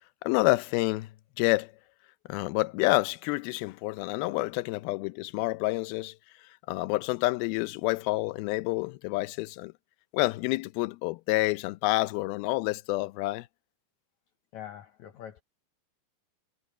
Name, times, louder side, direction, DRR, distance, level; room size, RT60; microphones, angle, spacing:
voice 1, 0.2-1.1 1.4-1.7 2.3-6.1 6.7-9.7 10.1-13.5, left 21 dB, 85° left, 2.5 m, -28 dB
voice 2, 14.5-15.4, left 10 dB, 70° left, 1.8 m, -43 dB
omnidirectional pair, 4.3 m